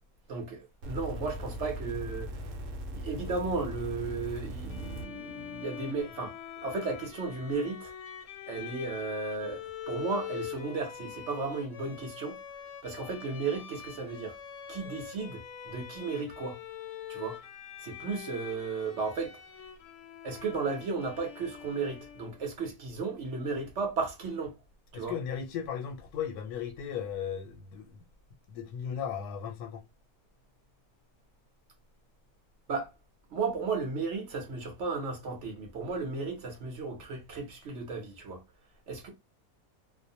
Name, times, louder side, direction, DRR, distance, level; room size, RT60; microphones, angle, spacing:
voice 1, 0.3-2.3 2.9-6.3 6.6-7.9 8.5-12.4 12.8-14.4 14.7-16.6 17.1-17.4 17.8-19.4 20.2-24.6 24.9-25.1 32.7-32.9 33.3-38.4 38.9-39.1, right 4 dB, 60° right, 0.9 m, -34 dB
sound 1, 0.8-5.1 6.0-6.1, equal, 75° right, 1.0 m, -39 dB
Bowed string instrument, 4.7-22.5, left 9 dB, 65° left, 0.7 m, -44 dB
voice 2, 24.9-27.9 28.5-29.8, left 8 dB, 90° left, 1.1 m, -36 dB
2.5 x 2.0 x 2.6 m
omnidirectional pair, 1.6 m